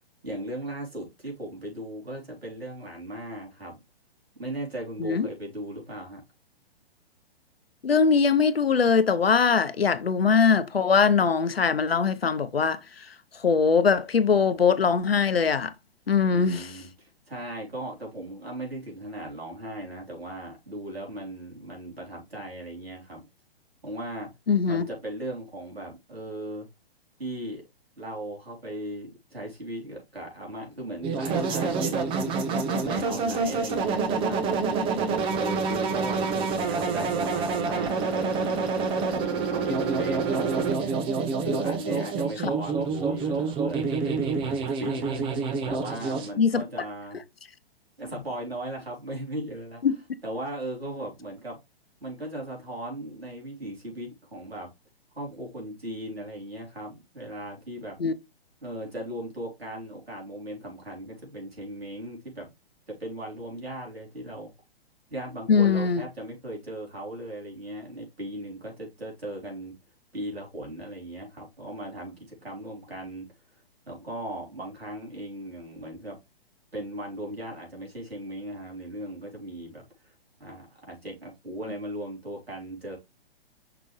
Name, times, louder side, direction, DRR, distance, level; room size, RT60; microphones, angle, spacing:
voice 1, 0.2-3.8 4.4-6.2 16.3-23.2 23.8-24.3 24.7-26.7 27.2-27.6 28.0-32.4 32.8-34.6 35.4-38.5 38.9-41.0 41.4-47.2 48.0-49.8 50.2-51.6 52.0-54.7 55.1-58.0 58.6-62.5 62.9-64.5 65.1-69.7 70.1-73.2 73.9-76.2 76.7-80.1 80.4-83.0, right 1 dB, 80° right, 3.7 m, -37 dB
voice 2, 7.8-15.7 16.1-16.7 24.5-24.8 42.4-42.5 46.4-46.6 49.8-50.0 58.0-58.1 65.5-66.0, left 5 dB, 75° left, 0.8 m, -22 dB
sound 1, 31.0-46.3, right 4 dB, 15° right, 0.9 m, -27 dB
5.9 x 5.2 x 3.2 m
figure-of-eight pair, 120°, 30 cm